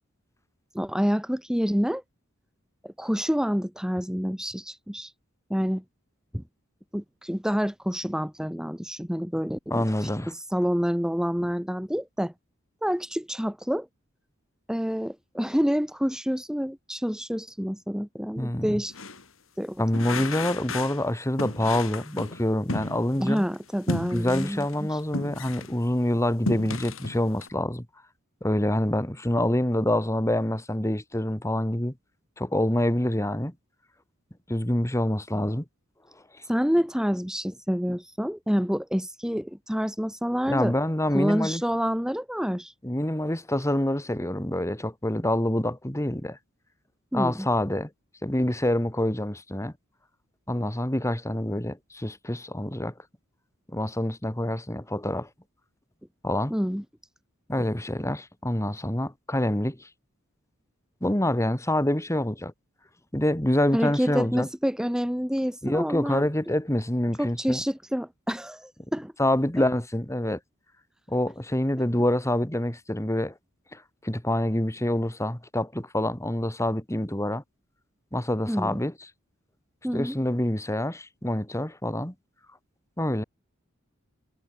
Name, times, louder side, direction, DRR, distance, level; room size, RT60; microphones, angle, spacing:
voice 1, 0.7-2.0 2.8-5.1 5.5-5.8 6.3-6.4 6.9-12.3 12.8-13.9 14.7-18.9 19.6-19.8 23.2-25.0 36.5-40.7 41.1-42.7 47.1-47.5 56.5-56.8 63.7-66.3 67.2-69.1 78.5-78.8 79.8-80.2, equal, 5° right, 2.0 m, -28 dB
voice 2, 9.7-10.3 18.4-18.8 19.8-23.4 24.1-27.9 28.4-31.9 32.4-33.5 34.5-35.6 40.5-41.6 42.8-46.4 47.1-47.9 48.2-49.7 50.5-52.9 53.7-55.3 56.2-56.5 57.5-59.9 61.0-62.5 63.1-64.5 65.6-67.6 69.2-70.4 71.1-73.3 73.7-77.4 78.1-78.9 79.9-82.1 83.0-83.2, left 1 dB, 15° left, 2.4 m, -26 dB
sound 1, 18.9-19.2 19.9-21.0 21.4-23.4 23.9-25.8 26.2-27.5, left 2 dB, 75° left, 5.0 m, -34 dB
head